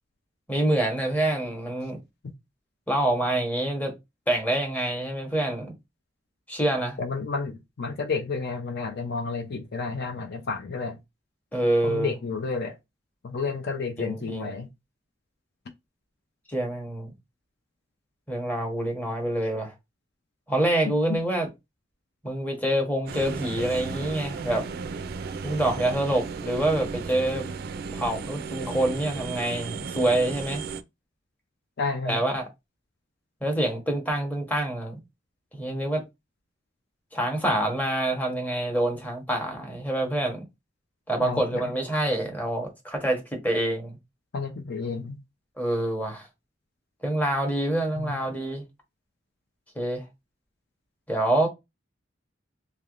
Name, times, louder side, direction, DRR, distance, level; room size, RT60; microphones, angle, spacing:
voice 1, 0.5-2.0 2.9-3.9 4.3-5.7 6.5-7.0 11.5-12.1 14.0-14.5 16.5-17.1 18.3-19.7 20.5-21.5 22.2-24.7 25.4-27.4 27.9-30.6 32.1-32.5 33.4-35.0 35.5-36.0 37.1-40.4 41.1-44.0 45.6-46.3 47.0-48.6 49.8-50.0 51.1-51.5, right 1 dB, 10° left, 0.9 m, -26 dB
voice 2, 7.0-11.0 11.8-12.8 13.2-14.7 20.8-21.2 31.8-32.2 41.2-41.7 44.3-45.2 48.0-48.2, left 4 dB, 60° left, 0.5 m, -31 dB
sound 1, 23.1-30.8, right 5 dB, 55° right, 0.3 m, -35 dB
3.4 x 2.8 x 2.4 m
head